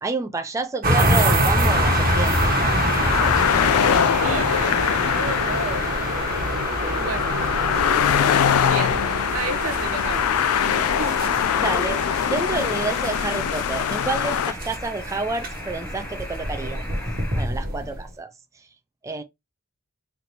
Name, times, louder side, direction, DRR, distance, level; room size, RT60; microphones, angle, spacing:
voice 1, 0.0-2.5 11.2-11.3 11.6-16.9 17.3-18.3 19.0-19.2, right 3 dB, 15° right, 0.3 m, -29 dB
sound 1, 0.8-18.1, right 1 dB, 45° right, 1.2 m, -26 dB
sound 2, 1.7-14.5, left 9 dB, 90° left, 0.4 m, -23 dB
voice 2, 3.0-4.8 5.1-5.9 6.9-7.4 8.6-10.3 10.6-11.2, right 3 dB, 75° right, 0.7 m, -32 dB
sound 3, 10.3-17.4, left 1 dB, 10° left, 0.7 m, -39 dB
4.2 x 3.3 x 2.8 m
head